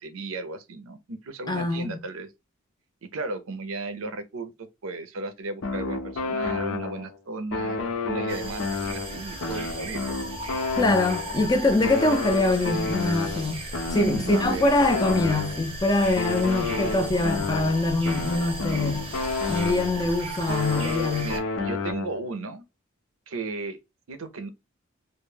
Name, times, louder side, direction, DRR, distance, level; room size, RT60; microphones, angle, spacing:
voice 1, 0.0-2.3 3.1-4.5 4.8-10.1 13.9-14.7 21.2-22.6 23.3-23.8 24.1-24.5, right 3 dB, 80° right, 0.6 m, -35 dB
voice 2, 1.5-2.0 10.7-13.6 13.9-19.1 19.5-21.3, left 2 dB, 20° left, 0.4 m, -24 dB
sound 1, 5.6-7.2 7.5-11.5 11.8-15.7 16.2-20.1 20.5-22.3, left 4 dB, 75° left, 0.6 m, -30 dB
sound 2, 8.3-21.4, right 1 dB, 25° right, 0.6 m, -36 dB
2.2 x 2.1 x 3.2 m
head